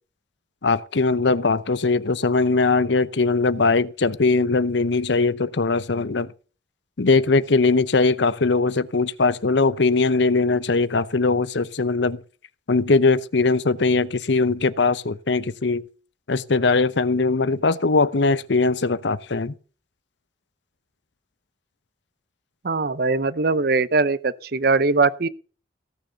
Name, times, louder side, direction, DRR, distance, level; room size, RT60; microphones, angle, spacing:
voice 1, 0.6-6.3 7.0-12.2 12.7-15.8 16.3-19.5, left 3 dB, 65° left, 0.7 m, -20 dB
voice 2, 22.6-25.3, right 3 dB, 50° right, 0.6 m, -21 dB
17.5 x 6.6 x 6.9 m
head